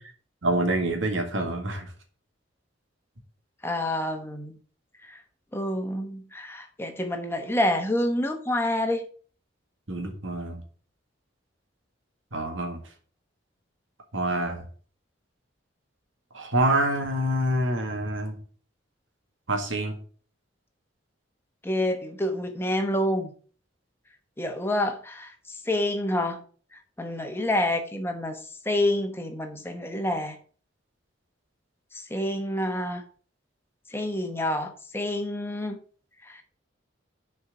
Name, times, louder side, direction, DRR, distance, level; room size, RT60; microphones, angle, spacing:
voice 1, 0.4-1.9 9.9-10.6 12.3-12.8 14.1-14.6 16.3-18.3 19.5-20.0, right 1 dB, 90° right, 4 dB, 1.9 m, -26 dB
voice 2, 3.6-4.6 5.1-5.2 5.5-9.0 21.6-23.3 24.4-26.4 27.0-28.4 28.6-30.4 31.9-33.0 33.9-35.8 36.3-36.4, left 1 dB, 10° left, 5 dB, 1.0 m, -28 dB
6.4 x 4.5 x 6.4 m, 0.43 s
head